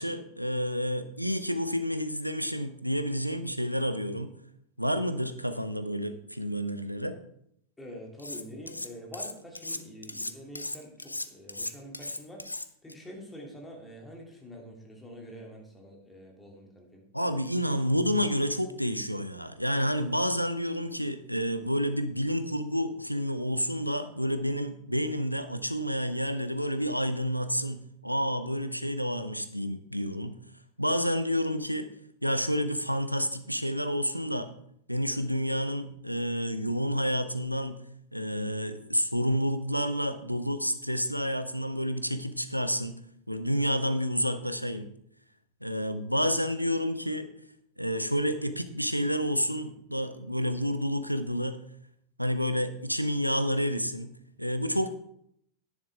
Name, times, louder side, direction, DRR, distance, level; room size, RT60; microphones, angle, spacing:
voice 1, 0.0-4.3 4.8-7.2 17.1-30.3 30.8-31.9 32.2-34.5 34.9-37.8 38.1-42.9 43.3-44.9 45.6-47.3 47.8-51.6 52.2-54.1 54.4-54.9, equal, 90° right, 10 dB, 0.8 m, -29 dB
voice 2, 7.8-12.4 12.8-17.0, equal, 10° left, 0 dB, 2.9 m, -46 dB
Cutlery silverware, 8.2-8.9 9.1-12.9, left 2 dB, 85° left, 0.5 m, -37 dB
10.5 x 10.0 x 3.6 m, 0.70 s
figure-of-eight pair, 90°, 0 cm